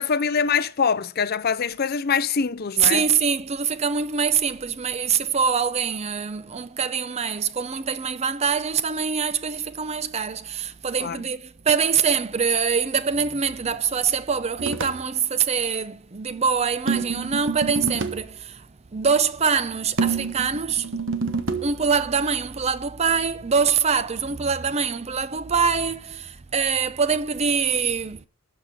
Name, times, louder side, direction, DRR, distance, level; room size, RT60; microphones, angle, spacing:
voice 1, 0.0-3.0 11.0-11.2, left 6 dB, 45° left, 0.5 m, -24 dB
voice 2, 2.8-18.7 18.9-20.9 21.6-28.3, right 6 dB, 30° right, 0.5 m, -24 dB
Conga Rolls, 14.6-15.0 16.9-18.2 20.0-21.7, right 4 dB, 60° right, 1.2 m, -27 dB
13.0 x 5.3 x 7.5 m
head